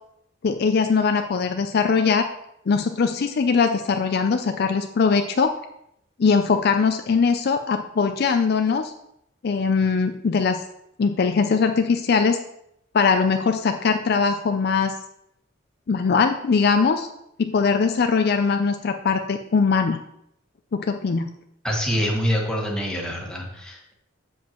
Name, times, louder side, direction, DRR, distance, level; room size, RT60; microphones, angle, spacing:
voice 1, 0.4-2.3 2.7-5.5 6.2-8.9 9.4-10.6 11.0-12.4 12.9-14.9 15.9-17.1 17.4-20.0 20.7-21.3, left 5 dB, 50° left, 6 dB, 0.4 m, -21 dB
voice 2, 21.6-23.9, equal, 5° left, -2 dB, 1.4 m, -25 dB
7.4 x 7.3 x 3.0 m, 0.76 s
head